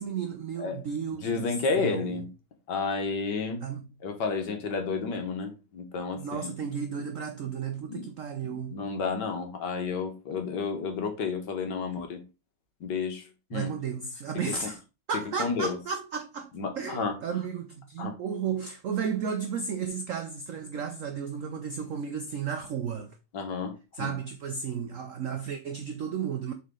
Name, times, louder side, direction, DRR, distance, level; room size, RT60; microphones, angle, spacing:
voice 1, 0.0-2.2 3.6-3.9 6.2-8.8 13.5-14.8 15.1-23.2 23.9-26.5, right 7 dB, 75° right, 0.7 m, -33 dB
voice 2, 1.2-2.3 2.7-3.6 4.0-6.5 7.9-8.0 8.4-12.2 12.8-13.7 14.5-14.6 15.4-15.8 16.5-17.1 18.0-18.1 23.3-24.1, left 5 dB, 65° left, 1.8 m, -31 dB
6.4 x 4.2 x 3.7 m
omnidirectional pair, 2.1 m